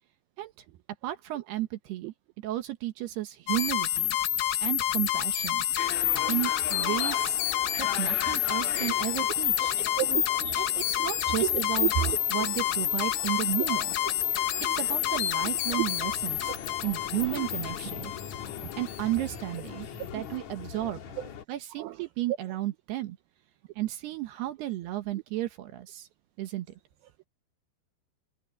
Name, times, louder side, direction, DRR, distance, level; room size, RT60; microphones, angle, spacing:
voice 1, 1.0-2.1 2.4-4.2 4.6-5.7 6.3-7.4 7.8-9.7 10.6-11.9 12.3-13.9 14.7-16.5 16.8-18.1 18.8-19.9 20.1-21.0 21.5-23.2 23.8-26.1 26.4-26.7, right 15 dB, 70° right, 3.0 m, -33 dB
sound 1, 3.5-19.3, left 12 dB, 80° left, 4.2 m, -28 dB
sound 2, 5.8-21.4, left 8 dB, 55° left, 2.3 m, -41 dB
voice 2, 10.0-10.7 11.4-12.2 14.7-14.8 21.8-21.9, right 15 dB, 90° right, 2.1 m, -30 dB
omnidirectional pair, 5.2 m